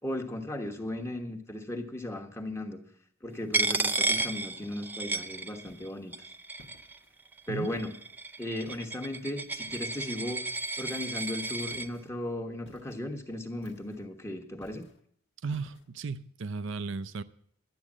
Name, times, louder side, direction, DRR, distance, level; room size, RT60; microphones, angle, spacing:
voice 1, 0.0-2.8 3.2-6.3 7.5-7.9 8.4-10.4 10.8-14.9, left 1 dB, 15° left, 1.2 m, -36 dB
Coin (dropping), 3.5-5.9 6.1-7.0 7.7-11.9, right 3 dB, 10° right, 0.4 m, -32 dB
sound 1, 5.7-6.0 6.6-7.2 7.7-8.1 8.7-9.1 9.7-10.2 11.7-12.1 12.7-13.1 13.6-14.1 14.6-15.0 15.5-15.9, left 1 dB, 65° left, 1.2 m, -56 dB
voice 2, 7.5-7.8 15.4-17.2, right 4 dB, 70° right, 0.6 m, -35 dB
12.0 x 8.6 x 7.3 m
head